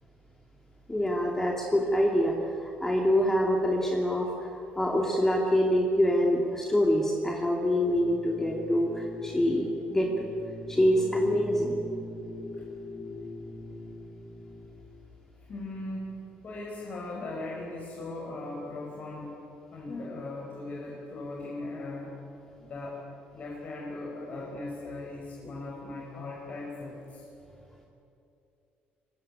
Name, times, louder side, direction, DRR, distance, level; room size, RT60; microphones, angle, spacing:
voice 1, 0.9-10.3 10.7-11.8, equal, 10° left, 0 dB, 2.7 m, -25 dB
sound 1, 7.9-14.7, left 2 dB, 65° left, 6.0 m, -41 dB
voice 2, 15.4-19.4 19.7-22.2 22.6-23.0 23.3-27.2, left 2 dB, 45° left, -3 dB, 5.5 m, -38 dB
24.0 x 21.0 x 9.1 m, 2.8 s
cardioid pair, 115°, 4 cm